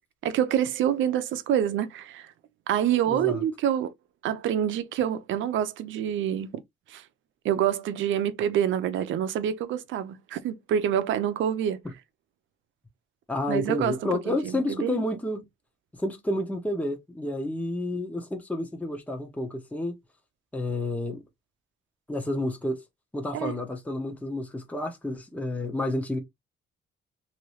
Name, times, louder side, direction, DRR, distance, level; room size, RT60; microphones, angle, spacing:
voice 1, 0.2-2.3 2.7-3.9 4.2-6.5 6.9-7.0 7.4-11.8 13.5-14.0 14.3-15.0 23.3-23.5, right 10 dB, 80° right, 0.6 m, -26 dB
voice 2, 3.1-3.4 13.3-15.4 16.0-19.9 20.5-21.2 22.1-22.8 23.1-26.2, left 1 dB, 5° left, 0.9 m, -30 dB
3.0 x 2.8 x 3.1 m
cardioid pair, 90°, 20 cm